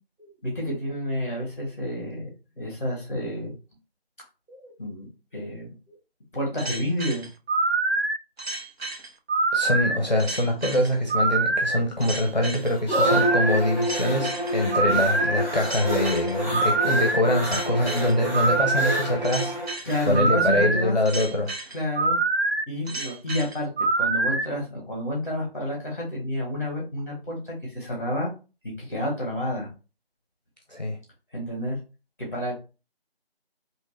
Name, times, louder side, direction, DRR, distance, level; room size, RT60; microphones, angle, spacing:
voice 1, 0.2-2.3 2.6-3.5 4.5-6.0 6.3-7.3 14.9-15.0 19.8-21.0 21.7-22.2 22.7-23.7 24.0-28.3 28.6-29.7 31.3-31.8 32.2-32.5, left 1 dB, 15° left, 1.4 m, -30 dB
sound 1, 6.6-24.5, right 3 dB, 80° right, 0.8 m, -25 dB
voice 2, 9.5-19.5 20.1-21.5 30.7-31.0, left 1 dB, 45° left, 0.7 m, -24 dB
sound 2, 12.0-20.2, equal, 15° right, 1.6 m, -33 dB
Bowed string instrument, 13.0-19.7, equal, 50° right, 0.9 m, -30 dB
3.5 x 2.9 x 2.9 m
figure-of-eight pair, 175°, 31 cm